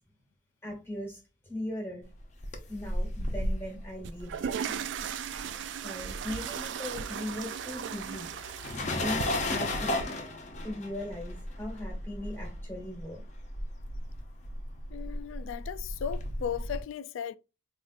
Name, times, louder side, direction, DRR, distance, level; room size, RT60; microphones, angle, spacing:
voice 1, 0.6-2.1 2.7-4.7 5.8-8.3 8.9-10.0 10.6-13.2, left 1 dB, 10° left, 1.3 m, -39 dB
sound 1, 2.2-5.8 6.1-16.8, left 1 dB, 40° left, 0.6 m, -35 dB
sound 2, 4.0-10.0, right 7 dB, 70° right, 0.3 m, -37 dB
voice 2, 14.9-17.4, left 8 dB, 85° left, 0.3 m, -36 dB
4.8 x 2.5 x 2.5 m
head